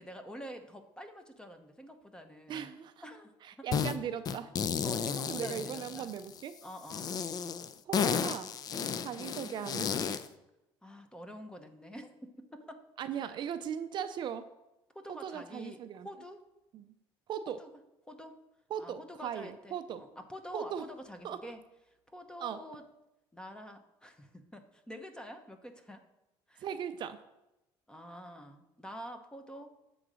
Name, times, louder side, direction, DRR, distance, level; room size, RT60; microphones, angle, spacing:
voice 1, 0.0-2.7 3.0-3.3 3.6-3.7 4.8-6.1 6.6-7.1 8.8-9.2 10.8-12.8 13.2-13.4 14.9-15.8 16.0-16.4 17.6-17.7 18.1-18.4 18.8-21.6 22.1-22.9 23.3-26.0 26.5-26.7 27.9-29.7, equal, 10° left, 7 dB, 0.7 m, -47 dB
voice 2, 2.5-2.9 3.4-4.5 5.3-6.6 7.9-8.5 9.0-9.9 13.0-14.5 15.1-16.1 16.7-16.9 17.3-17.6 18.7-20.1 20.5-20.9 21.2-21.5 22.4-22.6 26.6-27.2, right 8 dB, 50° right, 11 dB, 0.4 m, -38 dB
sound 1, 3.7-4.0 4.3-6.4 6.9-10.3, left 7 dB, 40° left, 0.4 m, -33 dB
7.8 x 3.9 x 6.1 m, 0.92 s
cardioid pair, 115°, 10 cm